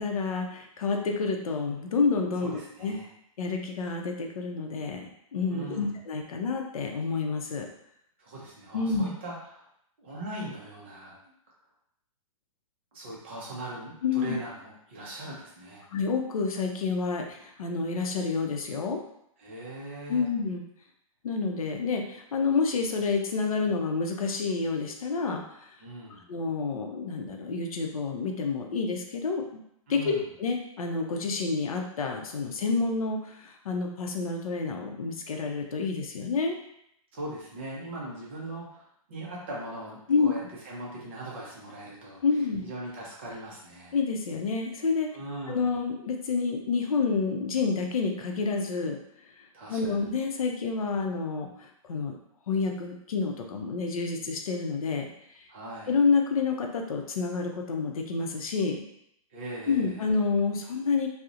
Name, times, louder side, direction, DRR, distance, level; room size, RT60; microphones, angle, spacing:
voice 1, 0.0-2.9 3.4-7.7 8.7-9.1 14.0-14.4 15.9-19.0 20.1-20.6 21.2-25.4 26.3-29.6 29.9-36.6 40.1-40.3 42.2-42.6 43.9-45.1 45.5-49.0 49.7-52.2 52.5-55.1 55.9-58.8 59.7-61.1, left 4 dB, 75° left, 2 dB, 0.5 m, -29 dB
voice 2, 2.4-3.1 5.5-5.9 8.2-9.6 10.0-11.1 12.9-15.8 19.4-20.3 25.8-26.3 29.9-30.2 37.1-42.2 42.6-44.0 45.1-45.7 49.5-50.0 55.5-55.9 59.3-60.0, right 1 dB, 20° right, -5 dB, 0.4 m, -40 dB
2.7 x 2.0 x 2.4 m, 0.75 s
hypercardioid pair, 180°, 18 cm